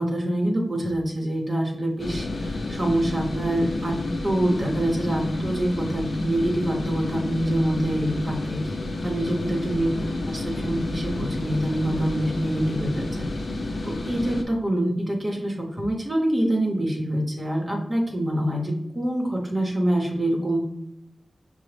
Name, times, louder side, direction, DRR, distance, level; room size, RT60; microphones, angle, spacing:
voice 1, 0.0-4.0 4.2-8.6 9.0-9.9 10.3-13.3 13.8-20.7, right 1 dB, 30° right, -1 dB, 0.8 m, -25 dB
sound 1, 2.0-14.4, left 2 dB, 65° left, 0.5 m, -30 dB
5.9 x 2.0 x 3.2 m, 0.84 s
wide cardioid pair, 110°, 0 cm